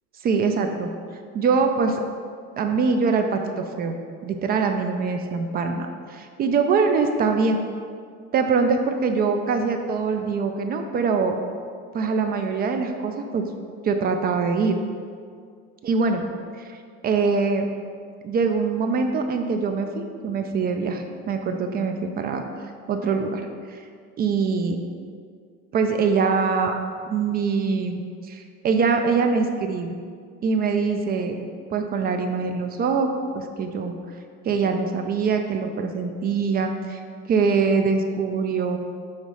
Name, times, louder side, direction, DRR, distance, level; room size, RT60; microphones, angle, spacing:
voice 1, 0.2-0.9 1.3-2.0 2.6-7.6 8.3-11.4 11.9-13.5 13.8-14.8 15.8-16.3 16.7-16.8 17.0-17.6 18.2-22.4 22.9-23.4 23.7-23.8 24.2-24.8 25.7-26.8 27.1-29.9 30.4-31.4 31.7-33.1 33.3-34.0 34.4-37.0 37.3-38.8, right 5 dB, 30° right, 5 dB, 0.4 m, -23 dB
6.4 x 3.0 x 5.4 m, 2.1 s
cardioid pair, 145°, 31 cm